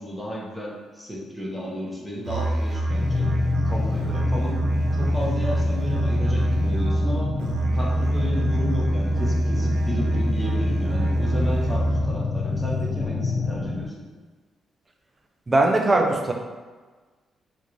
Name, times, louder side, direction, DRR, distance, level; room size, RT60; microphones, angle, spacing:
voice 1, 0.0-3.3 3.6-4.6 4.9-7.3 7.7-14.0, equal, ahead, -4 dB, 0.9 m, -33 dB
Musical instrument, 2.2-12.2, right 1 dB, 85° right, 0.4 m, -25 dB
sound 1, 2.9-13.9, left 3 dB, 40° left, 0.4 m, -28 dB
voice 2, 15.5-16.3, right 2 dB, 30° right, 2 dB, 0.5 m, -20 dB
3.7 x 2.4 x 3.0 m, 1.4 s
cardioid pair, 85°, 0 cm